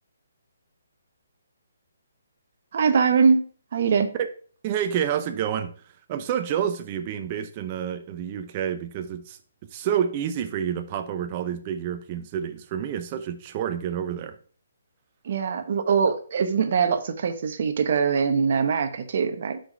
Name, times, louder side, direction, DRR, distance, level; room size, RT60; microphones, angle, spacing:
voice 1, 2.7-4.1 15.2-19.6, right 6 dB, 45° right, 1.0 m, -22 dB
voice 2, 4.6-5.7 6.1-9.4 9.7-14.4, right 9 dB, 25° right, 0.7 m, -28 dB
6.1 x 5.1 x 4.6 m
hypercardioid pair, 170°, 0 cm